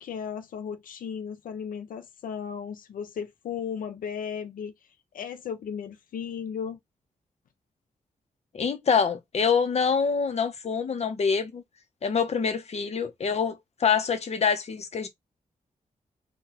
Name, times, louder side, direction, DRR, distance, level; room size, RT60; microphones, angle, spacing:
voice 1, 0.0-6.8, left 7 dB, 85° left, 0.4 m, -35 dB
voice 2, 8.5-11.6 12.0-15.1, left 6 dB, 50° left, 0.7 m, -25 dB
3.8 x 2.3 x 2.9 m
wide cardioid pair, 130°, 14 cm